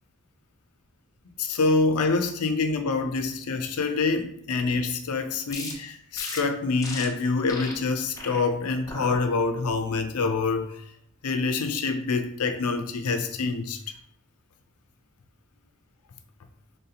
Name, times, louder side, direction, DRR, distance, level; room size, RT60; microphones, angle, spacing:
voice 1, 1.4-10.8 11.2-13.8, left 4 dB, 85° left, 7 dB, 0.5 m, -26 dB
sound 1, 5.5-5.7 6.2-6.4 6.8-7.1 7.5-7.7 8.1-8.4 8.9-9.2 9.7-10.0, left 2 dB, 15° left, 0.7 m, -36 dB
4.0 x 3.7 x 2.8 m, 0.68 s
head